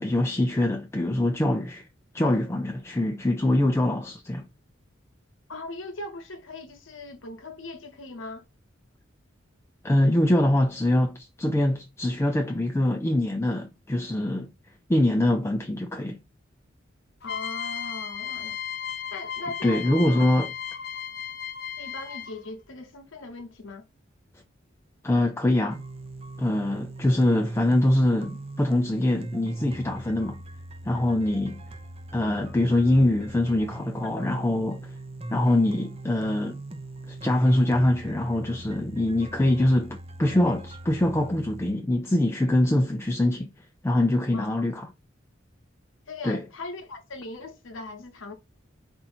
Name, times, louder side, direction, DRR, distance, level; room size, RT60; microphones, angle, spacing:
voice 1, 0.0-1.9 2.1-4.4 9.8-14.5 14.9-16.2 19.6-20.5 25.0-25.8 26.4-30.4 30.8-31.6 32.1-34.9 35.3-36.6 37.1-43.5 43.8-44.9 46.2-46.4, left 1 dB, 15° left, 0.4 m, -24 dB
voice 2, 5.5-8.5 17.2-18.6 19.1-20.4 21.8-23.8 34.2-34.3 44.3-44.7 46.1-48.3, left 2 dB, 90° left, 0.8 m, -39 dB
sound 1, 17.2-22.5, left 8 dB, 55° left, 0.7 m, -35 dB
sound 2, 25.7-41.7, right 2 dB, 30° right, 0.6 m, -40 dB
4.4 x 2.5 x 4.3 m
head